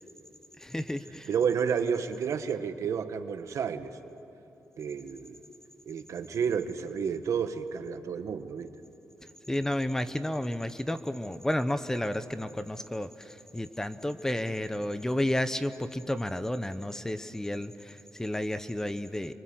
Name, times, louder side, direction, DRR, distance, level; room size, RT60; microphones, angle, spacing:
voice 1, 0.6-1.3 9.5-19.3, left 1 dB, 10° left, 11 dB, 0.9 m, -31 dB
voice 2, 1.3-4.0 4.8-5.4 5.9-8.7, right 7 dB, 70° right, 8 dB, 1.4 m, -31 dB
29.5 x 24.0 x 7.9 m, 2.9 s
cardioid pair, 110°, 6 cm